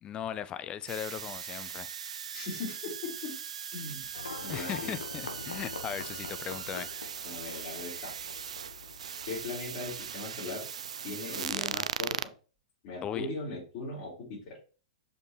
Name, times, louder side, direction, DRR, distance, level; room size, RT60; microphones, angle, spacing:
voice 1, 0.0-1.9 4.5-6.9 13.0-13.3, left 10 dB, 25° left, 0.5 m, -38 dB
sound 1, 0.9-12.3, right 8 dB, 70° right, 0.3 m, -39 dB
voice 2, 2.3-3.4 3.7-4.1 4.4-5.0 7.2-8.1 9.2-10.7 11.0-12.3 12.8-14.6, left 3 dB, 50° left, 4.0 m, -39 dB
Livestock farm animals working animals, 4.1-10.2, left 4 dB, 85° left, 1.2 m, -45 dB
6.6 x 5.2 x 3.3 m
figure-of-eight pair, 105°, 4 cm